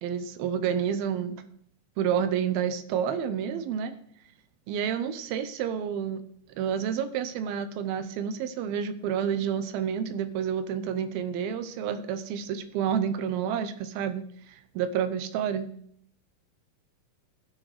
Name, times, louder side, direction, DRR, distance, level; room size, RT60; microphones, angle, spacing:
voice 1, 0.0-1.4 2.0-4.0 4.7-6.2 6.6-15.7, right 8 dB, 80° right, 11 dB, 2.7 m, -29 dB
16.5 x 6.2 x 5.0 m, 0.65 s
omnidirectional pair, 4.3 m